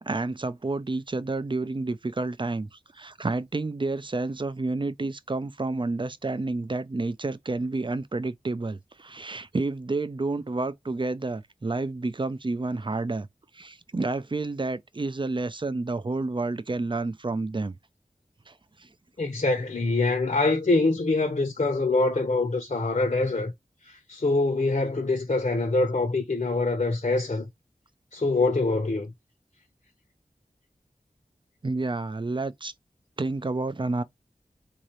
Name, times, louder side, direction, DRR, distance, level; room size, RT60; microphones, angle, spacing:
voice 1, 0.0-13.3 13.5-17.7 18.5-18.6 18.8-18.9 31.6-32.7 33.2-34.0, right 3 dB, 35° right, 0.5 m, -30 dB
voice 2, 19.2-23.5 23.9-27.4 28.1-29.1, left 3 dB, 55° left, 0.9 m, -24 dB
3.8 x 2.7 x 3.1 m
wide cardioid pair, 60°, 15 cm